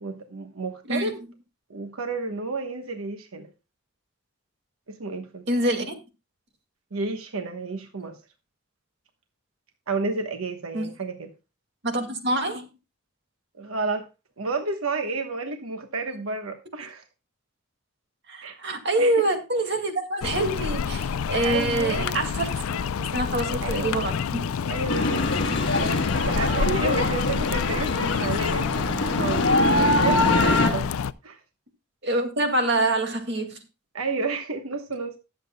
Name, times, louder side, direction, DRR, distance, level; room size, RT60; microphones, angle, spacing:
voice 1, 0.0-1.2 1.7-3.5 4.9-5.5 6.9-8.2 9.9-11.3 13.6-14.0 14.4-17.0 18.4-18.5 19.0-19.2 21.4-22.2 23.6-24.1 24.6-25.3 25.6-30.9 31.2-31.4 33.9-35.2, right 3 dB, 90° right, 1.2 m, -31 dB
voice 2, 5.5-5.9 10.7-10.9 11.8-12.7 18.3-22.9 23.1-24.4 32.0-33.6, right 1 dB, 55° right, 2.1 m, -26 dB
sound 1, 20.2-31.1, left 6 dB, 90° left, 0.4 m, -28 dB
sound 2, 24.9-30.7, left 2 dB, 55° left, 1.6 m, -24 dB
20.0 x 7.7 x 2.2 m
head